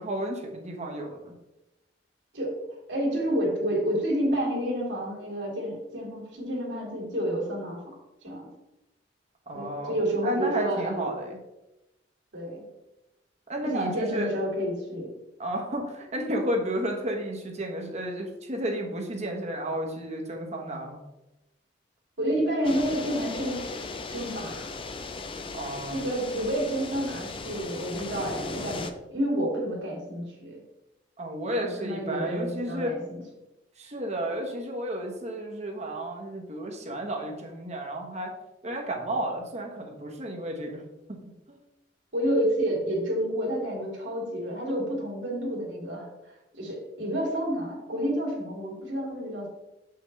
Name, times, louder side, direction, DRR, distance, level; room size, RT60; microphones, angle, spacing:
voice 1, 0.0-1.3 9.5-9.9 10.2-11.4 13.5-14.3 15.4-21.0 25.5-26.0 31.2-32.9 33.8-38.3 38.6-40.8 41.5-41.6, right 1 dB, 40° right, 2 dB, 1.2 m, -32 dB
voice 2, 2.9-7.8 8.2-8.5 9.5-11.1 12.3-12.7 13.6-15.1 22.2-23.8 24.1-24.7 25.9-30.6 31.4-33.2 42.1-46.1 46.5-49.5, equal, 70° right, -2 dB, 2.6 m, -29 dB
sound 1, 22.6-28.9, left 3 dB, 30° left, 0.5 m, -37 dB
7.2 x 5.8 x 3.2 m, 0.96 s
head